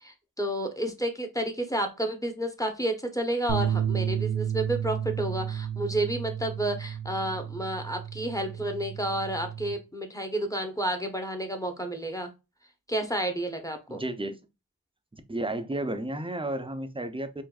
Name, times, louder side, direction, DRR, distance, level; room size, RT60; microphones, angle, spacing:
voice 1, 0.0-12.3 12.9-14.0, right 1 dB, 10° left, 0.9 m, -31 dB
sound 1, 3.5-9.7, right 9 dB, 80° right, 0.8 m, -32 dB
voice 2, 13.9-14.4 15.1-17.4, right 1 dB, 15° right, 0.6 m, -32 dB
4.7 x 2.5 x 2.4 m
wide cardioid pair, 45°, 37 cm